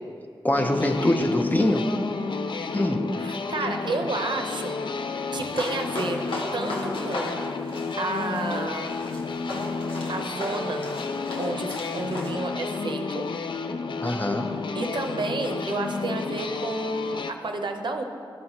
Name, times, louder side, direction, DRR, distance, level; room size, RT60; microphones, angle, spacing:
voice 1, 0.4-1.9 2.7-3.1 14.0-14.5, left 1 dB, 20° left, 4 dB, 0.6 m, -23 dB
sound 1, 0.5-17.3, left 4 dB, 65° left, 0.4 m, -31 dB
voice 2, 3.2-4.8 5.3-6.2 6.5-7.3 7.7-8.9 10.1-10.9 11.4-13.3 14.7-18.0, right 3 dB, 60° right, 4 dB, 0.6 m, -31 dB
sound 2, 5.4-12.3, left 1 dB, 80° left, 0.9 m, -36 dB
12.0 x 4.0 x 2.9 m, 2.3 s
cardioid pair, 45°, 9 cm